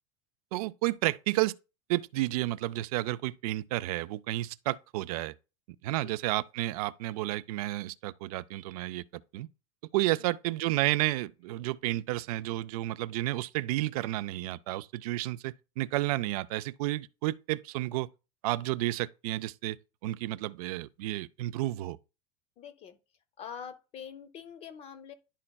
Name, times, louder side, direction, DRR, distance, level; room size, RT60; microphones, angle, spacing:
voice 1, 0.5-1.5 1.9-5.3 5.8-9.0 9.3-9.5 9.9-18.1 18.4-19.8 20.0-22.0, right 17 dB, 85° right, 0.4 m, -31 dB
voice 2, 22.6-23.0 23.4-25.1, left 7 dB, 35° left, 0.6 m, -45 dB
11.0 x 4.3 x 2.3 m
supercardioid pair, 150°, 19 cm